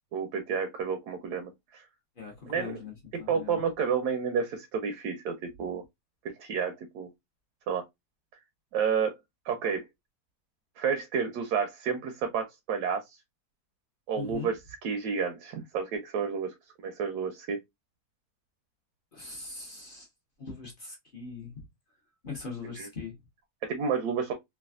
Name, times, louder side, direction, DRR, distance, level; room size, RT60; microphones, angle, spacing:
voice 1, 0.1-1.8 2.5-2.8 3.3-5.8 6.4-7.1 7.7-7.8 8.7-9.1 9.5-9.8 10.8-13.2 14.1-14.6 14.8-17.6 22.8-22.9 23.7-24.3, right 6 dB, 80° right, 1.1 m, -30 dB
voice 2, 2.2-3.6 14.2-14.5 19.1-20.1 20.4-21.6 22.2-23.2, left 4 dB, 45° left, 0.7 m, -41 dB
3.2 x 2.3 x 2.3 m
omnidirectional pair, 1.6 m